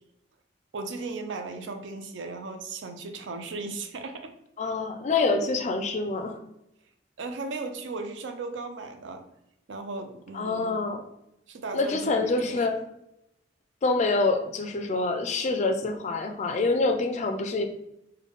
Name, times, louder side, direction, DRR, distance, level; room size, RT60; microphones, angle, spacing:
voice 1, 0.7-4.3 7.2-9.2 9.7-10.8 11.5-12.7, right 3 dB, 70° right, 6 dB, 0.5 m, -36 dB
voice 2, 4.6-6.4 10.3-11.0 11.7-12.8 13.8-17.6, left 3 dB, 35° left, 6 dB, 0.3 m, -26 dB
3.8 x 2.1 x 3.5 m, 0.83 s
head